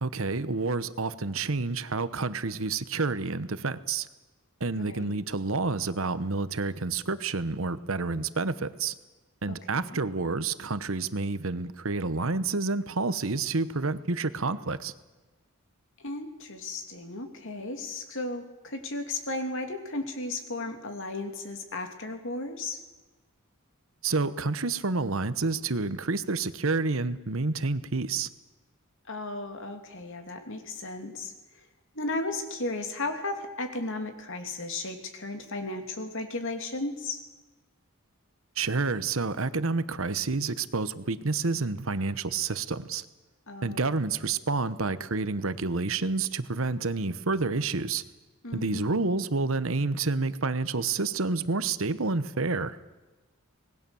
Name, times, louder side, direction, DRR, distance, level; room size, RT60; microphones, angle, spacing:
voice 1, 0.0-4.1 4.6-8.9 9.4-14.9 24.0-28.3 38.6-43.0 43.6-48.0 48.5-52.8, right 3 dB, 65° right, 14 dB, 1.1 m, -29 dB
voice 2, 4.7-5.2 9.5-10.0 16.0-22.8 29.1-31.7 31.9-37.2 43.5-44.0 48.4-49.1, left 2 dB, 60° left, 6 dB, 2.9 m, -35 dB
26.0 x 19.5 x 7.1 m, 1.2 s
head